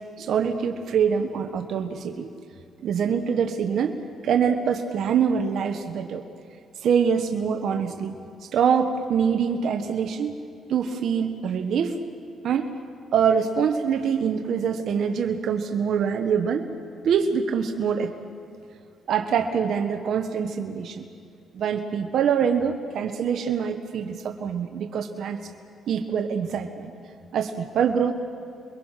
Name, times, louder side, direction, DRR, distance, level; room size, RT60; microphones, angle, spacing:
voice 1, 0.2-2.3 2.8-4.0 4.2-6.2 6.8-8.1 8.5-10.3 10.7-12.0 12.4-12.7 13.1-16.7 17.0-18.1 19.1-21.0 21.5-25.4 25.9-26.9 27.3-28.1, right 7 dB, 70° right, 5 dB, 1.2 m, -24 dB
29.0 x 22.0 x 5.8 m, 2.3 s
cardioid pair, 90°, 0 cm